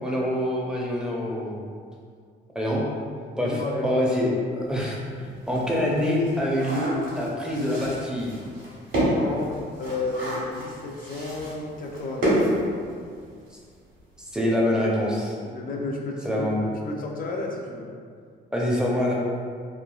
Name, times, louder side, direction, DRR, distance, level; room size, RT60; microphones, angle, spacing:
voice 1, 0.0-1.6 2.5-2.8 3.4-5.0 5.5-8.3 14.3-15.3 16.2-16.6 18.5-19.1, left 1 dB, 5° right, -3 dB, 0.5 m, -25 dB
voice 2, 3.4-4.1 5.2-5.3 9.2-9.5 9.8-12.4 15.5-16.5 16.8-17.9, left 2 dB, 45° left, 0 dB, 0.4 m, -32 dB
sound 1, 4.7-4.8 5.2-13.3 13.6-13.7 14.0-14.2, equal, 75° right, 1.3 m, -29 dB
3.1 x 2.3 x 2.3 m, 2.1 s
cardioid pair, 90°, 20 cm